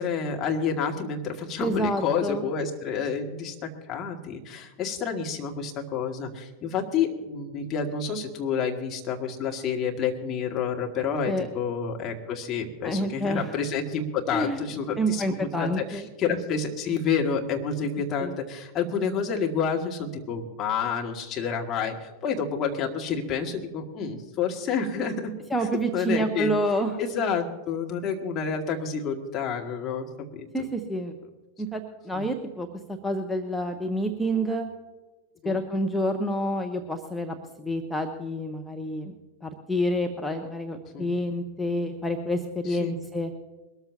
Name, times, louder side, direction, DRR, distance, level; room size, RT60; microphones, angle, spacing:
voice 1, 0.0-25.3 25.9-26.5 27.0-30.1 30.3-30.5 32.1-32.2 35.4-35.6 40.9-41.1 42.7-42.9, left 6 dB, 30° left, 1 dB, 2.1 m, -29 dB
voice 2, 1.6-2.5 11.3-11.5 12.8-13.5 14.3-14.6 15.0-16.1 18.2-18.4 25.5-27.0 30.5-31.1 31.6-34.7 35.4-39.1 39.4-43.3, equal, 5° left, 3 dB, 0.9 m, -28 dB
22.0 x 13.5 x 2.8 m, 1.2 s
figure-of-eight pair, 90°, 0 cm